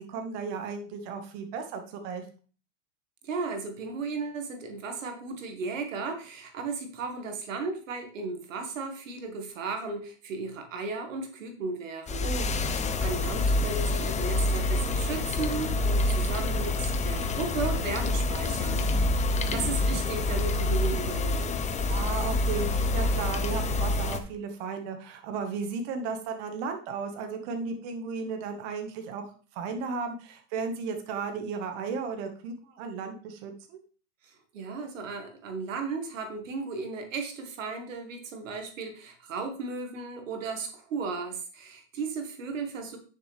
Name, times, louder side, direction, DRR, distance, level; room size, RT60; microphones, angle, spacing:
voice 1, 0.0-2.2 12.2-12.5 18.6-19.1 21.9-29.2 29.5-33.8, right 5 dB, 60° right, 5 dB, 1.7 m, -35 dB
voice 2, 3.2-12.3 12.6-21.6 34.2-43.0, right 4 dB, 90° right, 5 dB, 1.9 m, -35 dB
sound 1, 12.1-24.2, left 2 dB, 20° left, 0.9 m, -27 dB
9.8 x 6.5 x 3.4 m, 0.39 s
supercardioid pair, 115°, 37 cm